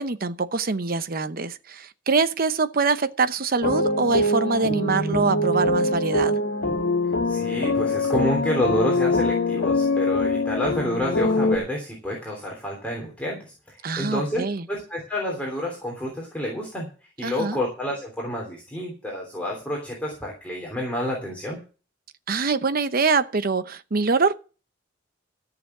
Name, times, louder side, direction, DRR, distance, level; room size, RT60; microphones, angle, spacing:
voice 1, 0.0-6.3 13.8-14.7 17.2-17.6 22.3-24.3, right 4 dB, 50° right, 0.8 m, -24 dB
sound 1, 3.6-11.6, left 2 dB, 70° left, 2.2 m, -23 dB
voice 2, 7.2-16.9 17.2-21.6, equal, 10° left, 3.3 m, -29 dB
14.0 x 7.0 x 6.0 m
head